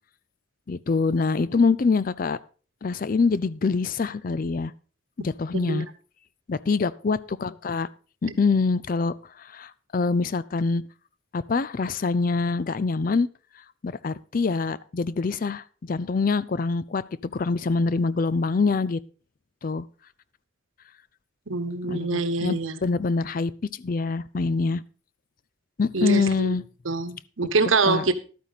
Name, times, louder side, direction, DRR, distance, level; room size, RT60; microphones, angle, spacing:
voice 1, 0.7-2.4 2.8-4.7 5.2-5.9 6.5-7.9 8.2-10.8 11.3-13.3 13.8-19.0 19.6-19.8 21.9-23.5 23.8-24.8 25.8-26.6 27.8-28.0, left 4 dB, 45° left, 18 dB, 0.4 m, -25 dB
voice 2, 5.5-5.8 8.3-8.4 21.5-22.8 25.9-26.5 26.8-28.2, right 3 dB, 80° right, 12 dB, 1.1 m, -25 dB
12.0 x 9.3 x 4.1 m, 0.37 s
head